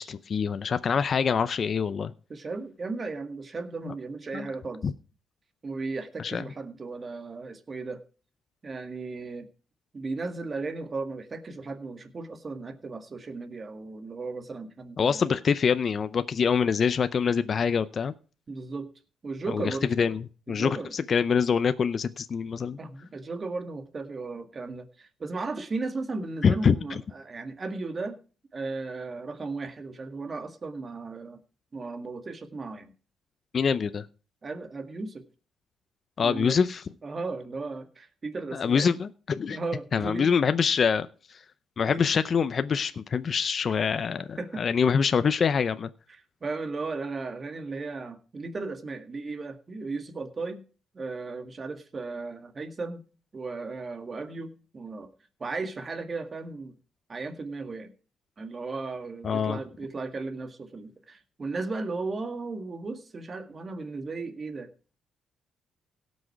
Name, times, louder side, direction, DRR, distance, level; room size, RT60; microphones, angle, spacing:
voice 1, 0.0-2.1 3.8-3.9 4.3-4.5 4.8-4.9 6.2-6.4 15.0-18.1 19.5-19.6 20.0-20.2 20.5-22.8 26.4-26.8 33.5-34.0 36.2-36.8 38.5-39.6 39.9-41.1 41.8-45.9 59.2-59.6, left 6 dB, 45° left, 12 dB, 0.6 m, -25 dB
voice 2, 2.3-4.8 5.6-8.0 8.6-9.5 9.9-15.2 18.5-18.9 19.2-19.9 20.5-20.9 22.8-28.2 28.5-31.4 31.7-32.9 34.4-35.2 36.2-36.6 37.0-38.9 39.5-40.3 41.9-42.0 44.4-44.7 46.1-50.6 50.9-53.0 53.3-55.1 55.4-56.7 57.1-57.9 58.4-64.7, right 3 dB, 35° right, 7 dB, 1.9 m, -35 dB
17.0 x 6.3 x 4.7 m, 0.37 s
cardioid pair, 90°, 0 cm